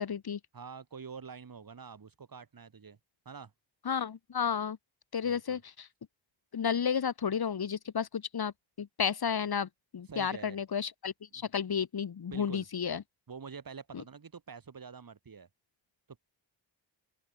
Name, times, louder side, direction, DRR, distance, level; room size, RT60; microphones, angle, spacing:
voice 1, 0.0-0.4 3.9-4.8 5.1-5.9 6.5-13.0, left 7 dB, 50° left, 1.7 m, -32 dB
voice 2, 0.5-3.0 3.3-3.5 5.2-5.6 10.1-10.6 11.4-11.5 12.3-12.7 13.3-15.5, right 5 dB, 45° right, 3.8 m, -46 dB
open air
wide cardioid pair, 115°, 48 cm